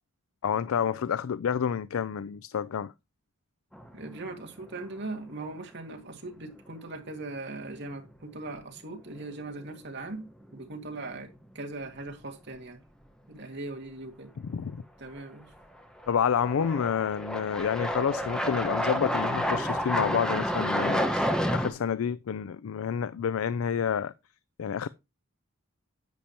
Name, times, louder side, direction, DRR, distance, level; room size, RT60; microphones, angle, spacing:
voice 1, 0.4-2.9 14.4-14.8 16.1-21.3 21.5-24.1 24.6-24.9, left 7 dB, 85° left, 0.4 m, -29 dB
sound 1, 3.7-4.4 4.7-4.8 7.7-7.8 9.2-9.4 9.7-9.8 15.2-15.3 16.0-21.7, equal, 5° left, 1.3 m, -29 dB
voice 2, 3.9-12.8 13.3-14.3 15.0-15.5, right 2 dB, 60° right, 2.0 m, -40 dB
10.5 x 8.6 x 2.9 m
head